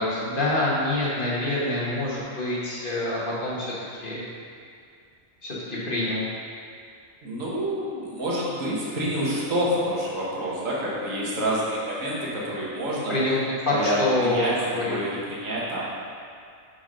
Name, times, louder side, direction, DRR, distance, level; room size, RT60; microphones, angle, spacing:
voice 1, 0.0-3.7 4.0-4.2 5.4-6.2 13.1-13.4 13.6-14.8, left 1 dB, 40° left, -7 dB, 1.7 m, -26 dB
voice 2, 7.2-13.1 13.7-15.8, equal, 85° right, -6 dB, 1.9 m, -28 dB
6.3 x 4.8 x 5.3 m, 2.3 s
omnidirectional pair, 1.3 m